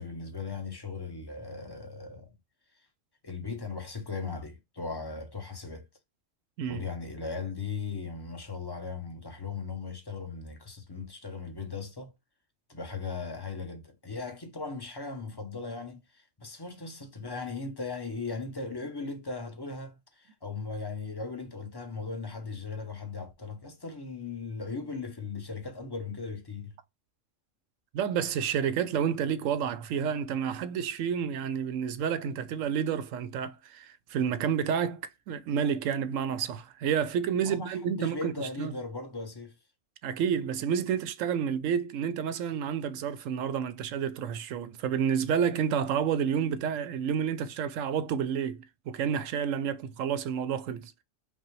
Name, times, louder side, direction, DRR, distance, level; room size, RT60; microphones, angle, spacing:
voice 1, 0.0-2.3 3.2-5.9 6.7-12.1 12.7-26.8 37.4-39.6, left 4 dB, 25° left, 0.7 m, -38 dB
voice 2, 27.9-38.8 40.0-50.9, right 8 dB, 85° right, 1.0 m, -30 dB
5.2 x 2.1 x 3.1 m
omnidirectional pair, 1.3 m